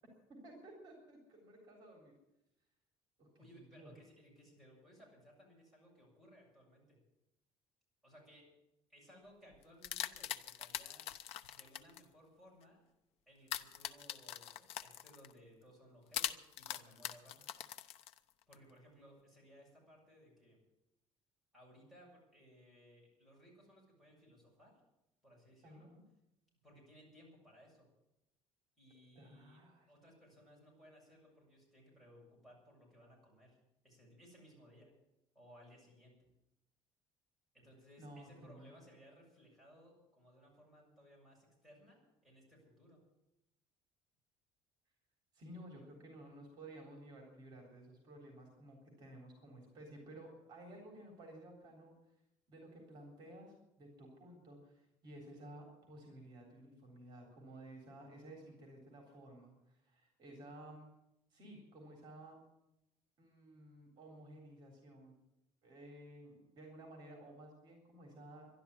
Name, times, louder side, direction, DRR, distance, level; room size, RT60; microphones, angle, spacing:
voice 1, 0.4-2.1 3.2-3.3 3.6-3.9 25.6-26.0 29.2-29.9 38.0-38.7 45.3-51.9 52.5-60.9 61.3-62.4 63.2-65.1 65.6-68.5, right 1 dB, 40° right, 1 dB, 3.6 m, -54 dB
voice 2, 3.4-7.0 8.0-8.5 8.9-11.0 11.5-12.8 13.3-17.4 18.5-20.6 21.5-24.7 25.2-25.9 26.6-27.9 28.8-33.6 33.8-34.9 35.3-36.2 37.5-43.0, equal, ahead, -5 dB, 7.3 m, -62 dB
sound 1, 9.5-12.0 13.5-15.3 16.1-18.5, left 11 dB, 60° left, 0.8 m, -42 dB
12.0 x 11.5 x 9.7 m, 0.87 s
cardioid pair, 160°, 11 cm